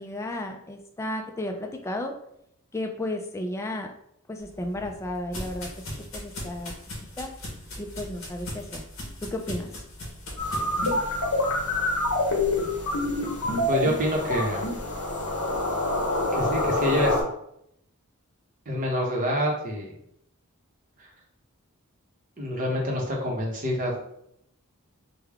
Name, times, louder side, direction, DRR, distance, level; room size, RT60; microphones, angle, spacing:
voice 1, 0.0-2.1 2.7-3.9 4.3-5.7 6.1-6.7 7.2-7.3 7.8-8.8 9.2-9.7, left 1 dB, 15° left, 3 dB, 0.3 m, -33 dB
sound 1, 4.4-11.0, left 1 dB, 65° left, 1.1 m, -39 dB
sound 2, 10.4-17.2, left 2 dB, 80° left, 0.8 m, -26 dB
voice 2, 13.4-14.6 16.3-17.2 18.7-19.9 21.0-21.1 22.4-24.0, equal, 35° right, -1 dB, 0.8 m, -27 dB
3.3 x 2.2 x 3.4 m, 0.74 s
head